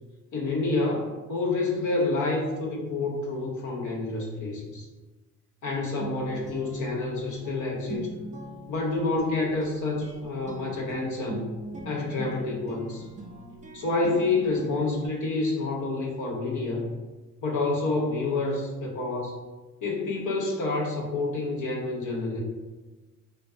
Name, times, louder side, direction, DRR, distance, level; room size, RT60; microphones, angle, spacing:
voice 1, 0.3-4.9 5.6-8.1 8.7-11.5 11.8-13.1 13.7-16.9 17.4-19.4 19.8-22.4, left 3 dB, 50° left, -1 dB, 0.6 m, -28 dB
Guitar, 6.0-15.1, right 1 dB, 20° right, 0.5 m, -39 dB
2.3 x 2.3 x 2.5 m, 1.2 s
supercardioid pair, 55°, 38 cm